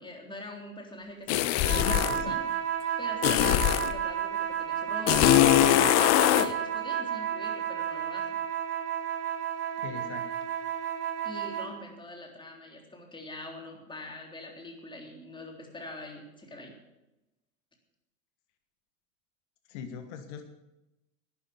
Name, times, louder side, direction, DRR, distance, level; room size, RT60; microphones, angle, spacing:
voice 1, 0.0-2.4 3.0-8.4 11.2-16.7, left 1 dB, 10° left, 1 dB, 3.5 m, -44 dB
sound 1, 1.3-2.2 3.2-3.9 5.1-6.5, left 14 dB, 40° left, 0.8 m, -22 dB
sound 2, 1.6-11.8, right 9 dB, 35° right, 2.0 m, -32 dB
voice 2, 1.7-2.4 9.8-10.3 19.7-20.4, left 7 dB, 60° left, 6 dB, 1.6 m, -39 dB
12.0 x 9.2 x 7.0 m, 0.96 s
hypercardioid pair, 85°, 40 cm